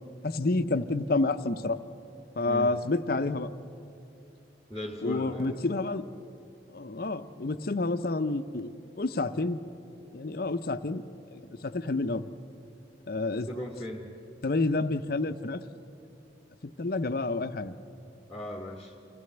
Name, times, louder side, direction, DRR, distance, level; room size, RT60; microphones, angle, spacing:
voice 1, 0.2-1.8 2.4-3.5 5.0-6.0 6.7-8.7 9.0-9.6 10.1-11.0 11.3-12.2 13.1-13.5 14.4-15.6 16.8-17.7, left 2 dB, 50° left, 11 dB, 0.7 m, -29 dB
voice 2, 2.5-2.8 4.7-5.6 13.5-14.1 18.3-19.0, left 1 dB, ahead, 0 dB, 1.4 m, -37 dB
25.5 x 16.0 x 8.0 m, 2.7 s
head